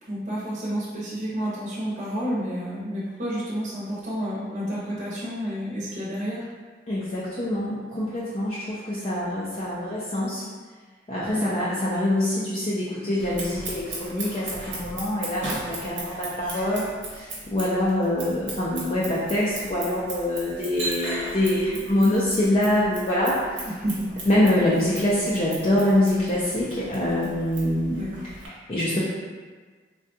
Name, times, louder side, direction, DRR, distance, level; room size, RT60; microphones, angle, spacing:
voice 1, 0.0-6.5 11.3-11.5 23.7-24.1 28.0-28.2, equal, 40° right, -8 dB, 0.7 m, -30 dB
voice 2, 6.9-10.4 11.1-23.6 24.3-28.0 28.7-29.0, left 1 dB, 30° left, -8 dB, 0.4 m, -25 dB
Scissors, 13.2-28.5, right 2 dB, 80° right, 1.0 m, -37 dB
3.6 x 2.2 x 2.6 m, 1.4 s
head